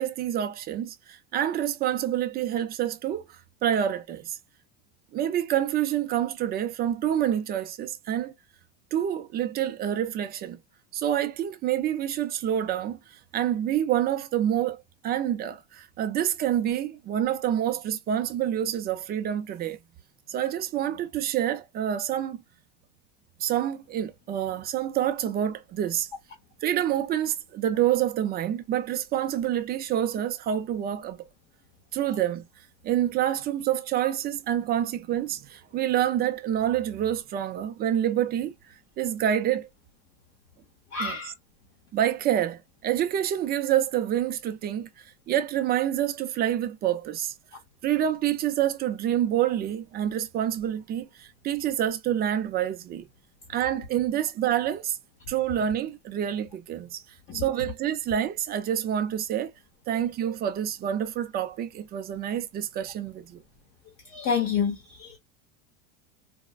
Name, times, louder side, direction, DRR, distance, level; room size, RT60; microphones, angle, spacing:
voice 1, 0.0-4.4 5.1-8.3 8.9-10.6 10.9-19.8 20.3-22.4 23.4-26.1 26.6-31.2 31.9-32.4 32.8-39.7 41.0-41.2 41.9-47.3 47.8-53.0 53.5-55.0 55.3-57.0 57.3-59.5 59.9-63.4, right 11 dB, 30° right, 0.4 m, -27 dB
voice 2, 40.9-41.3 57.3-57.4 59.9-60.0 64.1-65.2, left 6 dB, 35° left, 0.9 m, -28 dB
4.2 x 2.0 x 2.3 m
cardioid pair, 150°, 36 cm